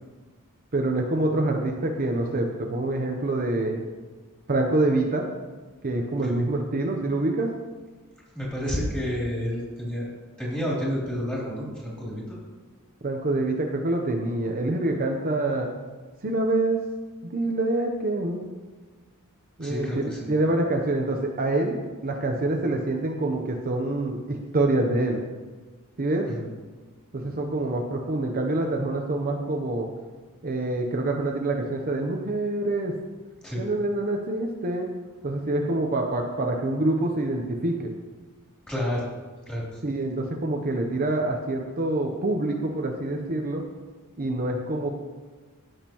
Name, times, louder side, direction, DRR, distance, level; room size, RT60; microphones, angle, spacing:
voice 1, 0.7-3.8 4.5-5.2 5.8-7.5 13.0-15.7 16.2-16.8 17.2-18.5 19.6-25.2 26.0-26.3 27.1-29.9 30.4-32.9 33.6-34.9 35.2-37.9 39.8-43.6 44.2-44.9, right 2 dB, 40° right, 2 dB, 0.8 m, -26 dB
voice 2, 8.3-10.0 10.4-12.4 19.6-20.3 26.3-26.5 33.4-33.6 38.7-39.0 39.5-39.6, equal, 5° left, -6 dB, 3.1 m, -30 dB
16.0 x 6.6 x 3.0 m, 1.3 s
head